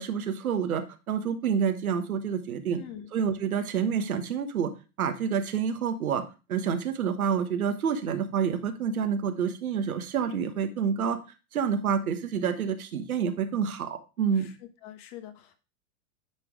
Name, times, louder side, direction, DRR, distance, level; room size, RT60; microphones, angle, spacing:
voice 1, 0.0-2.8 3.1-4.7 5.0-6.2 6.5-11.2 11.5-14.5, right 7 dB, 80° right, 8 dB, 1.2 m, -28 dB
voice 2, 2.8-3.1 14.3-14.5 14.8-15.6, left 10 dB, 50° left, 9 dB, 1.4 m, -44 dB
9.5 x 3.6 x 4.7 m, 0.31 s
hypercardioid pair, 100°, 43 cm